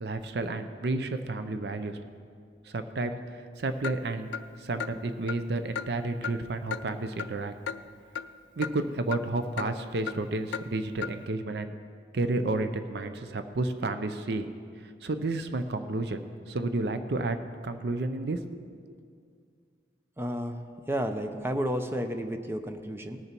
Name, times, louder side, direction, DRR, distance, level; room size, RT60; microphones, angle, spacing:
voice 1, 0.0-2.0 2.7-4.3 4.6-7.5 8.6-11.8 12.1-14.5 15.0-17.4 17.6-18.9, right 2 dB, 60° right, 9 dB, 0.5 m, -31 dB
Clock, 3.8-4.0 4.3-4.4 4.8-4.9 5.3-5.4 5.8-5.9 6.2-6.4 6.7-6.8 7.2-7.3 7.7-7.8 8.2-8.3 8.6-8.7 9.1-9.2 9.6-9.7 10.1-10.2 10.5-10.7 11.0-11.1, left 7 dB, 80° left, 0.4 m, -34 dB
voice 2, 20.2-23.2, equal, 15° right, 6 dB, 0.6 m, -32 dB
18.5 x 6.8 x 4.4 m, 2.2 s
head